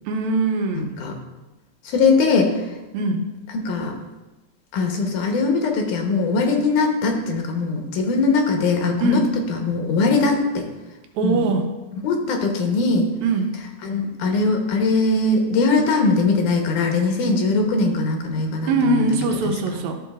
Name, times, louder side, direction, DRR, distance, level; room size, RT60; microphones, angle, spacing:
voice 1, 0.1-0.9 2.9-3.2 9.0-9.2 11.2-11.6 13.2-13.5 18.7-20.0, right 3 dB, 75° right, 5 dB, 2.0 m, -21 dB
voice 2, 1.9-2.6 3.5-4.0 4.7-9.2 9.5-10.7 11.2-11.4 12.0-13.1 13.8-19.2 19.4-19.5, left 3 dB, 85° left, 3 dB, 2.5 m, -21 dB
13.0 x 6.1 x 2.4 m, 1.1 s
omnidirectional pair, 3.5 m